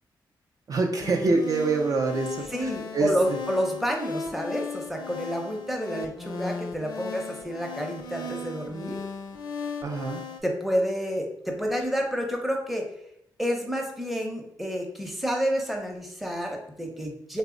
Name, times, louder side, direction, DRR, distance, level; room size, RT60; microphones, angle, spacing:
voice 1, 0.7-3.4 9.8-10.2, right 3 dB, 50° right, 2 dB, 0.4 m, -26 dB
sound 1, 1.0-10.4, left 4 dB, 70° left, 0.5 m, -37 dB
voice 2, 2.5-9.0 10.4-12.8 13.4-17.4, equal, ahead, 1 dB, 0.6 m, -29 dB
3.1 x 2.0 x 3.7 m, 0.75 s
cardioid pair, 85°, 8 cm